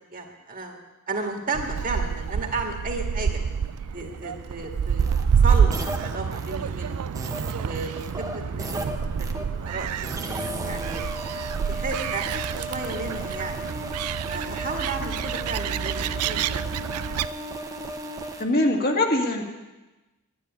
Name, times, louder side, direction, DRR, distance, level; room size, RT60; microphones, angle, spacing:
voice 1, 0.1-0.8 1.1-3.4 3.9-5.1 5.4-7.1 7.6-10.2 10.6-11.0 11.7-13.7 14.3-16.6, right 3 dB, 40° right, 2 dB, 2.0 m, -33 dB
Gull seagull, 1.5-17.3, right 7 dB, 90° right, 0.4 m, -27 dB
sound 1, 5.0-6.6 7.1-9.4 10.0-18.4, right 1 dB, 15° right, 1.0 m, -35 dB
voice 2, 18.4-19.4, left 1 dB, 45° left, 1 dB, 1.9 m, -22 dB
11.5 x 10.5 x 9.7 m, 1.1 s
head